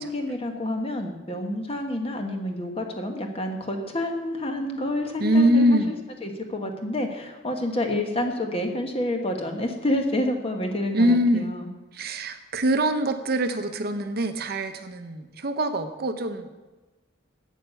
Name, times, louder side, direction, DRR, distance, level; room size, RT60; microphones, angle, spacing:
voice 1, 0.0-5.8 6.2-11.7, left 1 dB, 30° left, 4 dB, 1.2 m, -28 dB
voice 2, 5.2-5.9 10.9-11.5 11.9-16.5, equal, 50° right, 8 dB, 0.8 m, -23 dB
8.8 x 8.2 x 6.9 m, 1.2 s
head